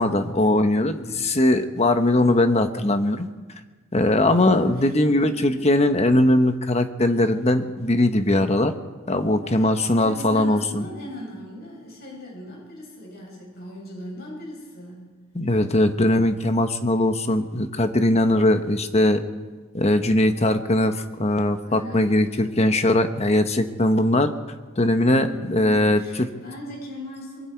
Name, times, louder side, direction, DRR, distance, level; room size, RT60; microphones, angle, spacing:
voice 1, 0.0-3.3 3.9-8.7 9.1-10.8 15.3-19.2 19.7-24.3 24.8-26.3, left 1 dB, 30° left, 7 dB, 1.2 m, -20 dB
voice 2, 4.3-5.6 9.4-15.2 21.6-22.5 25.1-27.5, equal, 45° left, -2 dB, 7.5 m, -39 dB
24.5 x 23.0 x 4.6 m, 1.3 s
head